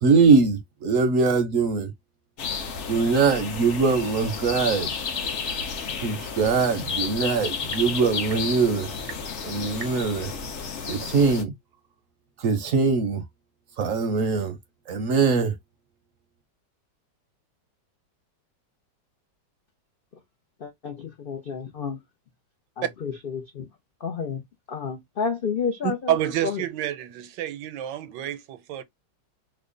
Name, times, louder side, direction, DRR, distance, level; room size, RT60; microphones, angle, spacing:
voice 1, 0.0-1.9 2.9-4.9 6.0-8.9 9.4-10.3 10.8-11.5 12.4-13.2 13.8-14.6 14.9-15.5, right 4 dB, 65° right, 0.8 m, -22 dB
sound 1, 2.4-11.4, left 5 dB, 55° left, 0.8 m, -32 dB
voice 2, 20.6-22.0 23.0-23.6 24.0-24.4 24.7-26.0, left 6 dB, 80° left, 0.5 m, -30 dB
voice 3, 25.8-28.8, right 12 dB, 80° right, 1.2 m, -28 dB
3.3 x 2.1 x 3.7 m
omnidirectional pair, 1.9 m